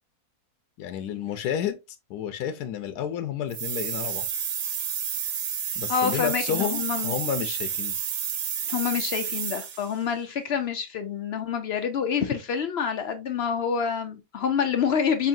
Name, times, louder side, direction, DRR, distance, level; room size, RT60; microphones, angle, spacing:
voice 1, 0.8-1.8 2.1-4.3 5.7-8.0, left 9 dB, 85° left, 1.1 m, -30 dB
sound 1, 3.5-9.9, right 8 dB, 75° right, 1.2 m, -30 dB
voice 2, 5.9-7.1 8.7-15.3, left 7 dB, 70° left, 0.6 m, -27 dB
5.5 x 2.6 x 2.5 m
omnidirectional pair, 1.6 m